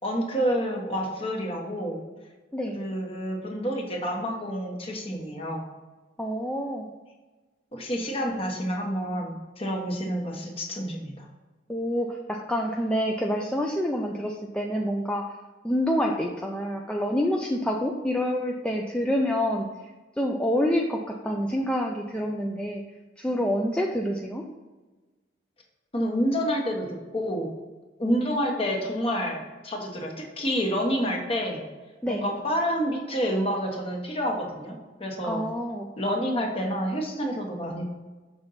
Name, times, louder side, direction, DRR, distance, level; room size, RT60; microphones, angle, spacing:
voice 1, 0.0-2.0 2.7-5.6 7.7-11.3 25.9-26.9 27.1-27.5 28.0-31.6 32.1-35.4 36.0-37.8, equal, 30° left, 1 dB, 1.1 m, -28 dB
voice 2, 6.2-6.9 11.7-15.3 15.6-19.7 20.2-22.8 23.2-24.4 28.0-28.4 32.0-32.2 35.2-35.9, equal, 5° left, 0 dB, 0.4 m, -27 dB
6.1 x 3.8 x 5.5 m, 1.2 s
head